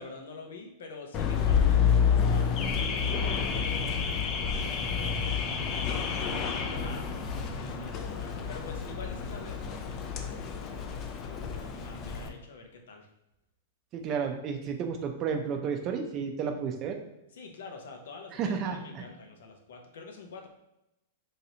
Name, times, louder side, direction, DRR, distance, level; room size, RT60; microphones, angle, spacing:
voice 1, 0.0-3.2 3.5-7.1 7.6-10.7 11.2-13.1 17.3-20.5, left 3 dB, 80° left, 3 dB, 0.6 m, -46 dB
Car / Alarm, 1.1-12.3, left 6 dB, 30° left, 0.3 m, -29 dB
voice 2, 13.9-17.0 18.3-19.0, right 6 dB, 35° right, 4 dB, 0.4 m, -32 dB
3.2 x 2.7 x 2.7 m, 0.91 s
hypercardioid pair, 140°, 0 cm